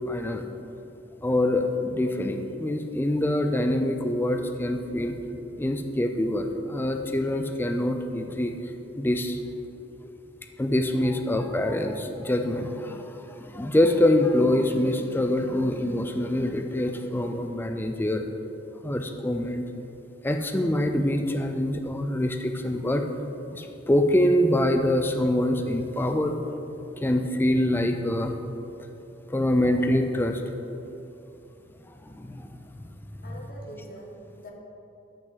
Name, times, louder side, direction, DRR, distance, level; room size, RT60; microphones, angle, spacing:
voice 1, 0.1-0.5 1.2-5.2 5.6-8.5 9.0-9.4 10.0-10.1 10.6-18.2 18.8-19.7 20.2-23.1 23.5-26.4 27.0-28.4 29.3-30.4 32.0-32.5, left 1 dB, 10° left, 5 dB, 0.4 m, -25 dB
voice 2, 33.2-34.5, equal, 45° left, -1 dB, 0.9 m, -43 dB
8.9 x 5.2 x 4.0 m, 2.9 s
head